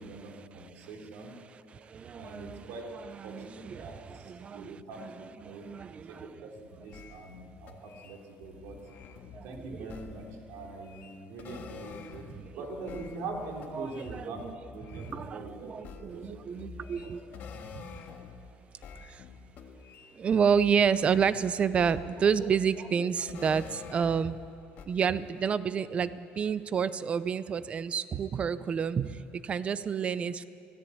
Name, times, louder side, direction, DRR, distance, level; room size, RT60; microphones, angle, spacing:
voice 1, 0.0-1.3 2.1-5.7 6.1-8.8 9.4-12.3 12.5-14.4 14.7-15.7 16.0-16.4 16.8-17.4, right 2 dB, 70° right, 1 dB, 3.9 m, -43 dB
voice 2, 1.7-6.3 9.3-9.9 12.3-12.5 13.7-14.6 14.9-17.2 17.7-17.8 19.1-19.2 20.1-24.4 24.9-30.4, right 7 dB, 25° right, 15 dB, 0.6 m, -30 dB
sound 1, 6.9-12.5 12.8-18.5 18.8-21.5 21.8-24.5 24.8-24.9, left 5 dB, 45° left, 1.8 m, -48 dB
25.0 x 17.5 x 8.6 m, 2.6 s
cardioid pair, 170°, 4 cm